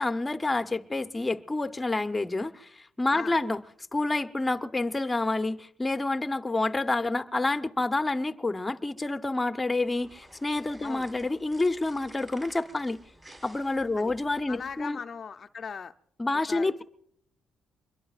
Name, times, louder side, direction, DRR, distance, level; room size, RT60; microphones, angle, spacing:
voice 1, 0.0-2.7 3.0-3.6 3.9-13.0 13.4-15.0 16.2-16.8, left 2 dB, 15° left, 0.8 m, -28 dB
sound 1, 9.8-14.8, right 1 dB, 30° right, 4.2 m, -53 dB
voice 2, 14.5-15.9 16.3-16.8, left 6 dB, 45° left, 0.5 m, -39 dB
24.5 x 22.0 x 2.5 m
cardioid pair, 90°, 0 cm